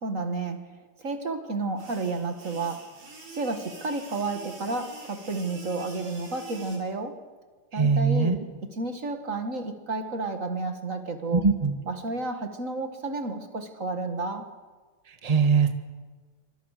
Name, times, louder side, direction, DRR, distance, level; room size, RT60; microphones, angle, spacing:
voice 1, 0.0-3.0 3.3-7.3 7.7-11.4 11.8-14.5, right 3 dB, 35° right, 7 dB, 1.6 m, -31 dB
sound 1, 1.8-6.8, right 3 dB, 80° right, 7.1 m, -45 dB
voice 2, 7.7-8.4 11.3-11.7 15.2-15.7, right 5 dB, 50° right, 7 dB, 0.4 m, -21 dB
27.5 x 25.5 x 6.6 m, 1.4 s
omnidirectional pair, 3.6 m